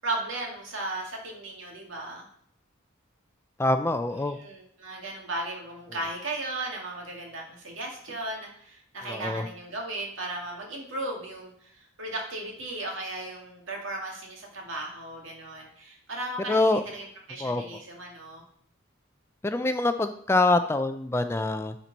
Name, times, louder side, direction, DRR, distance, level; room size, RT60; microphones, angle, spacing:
voice 1, 0.0-2.3 4.2-18.4, right 2 dB, 70° right, 0 dB, 2.1 m, -36 dB
voice 2, 3.6-4.4 9.0-9.5 16.5-16.8 17.4-17.6 19.4-21.8, left 2 dB, 10° left, 9 dB, 0.3 m, -25 dB
11.0 x 4.5 x 4.1 m, 0.66 s
head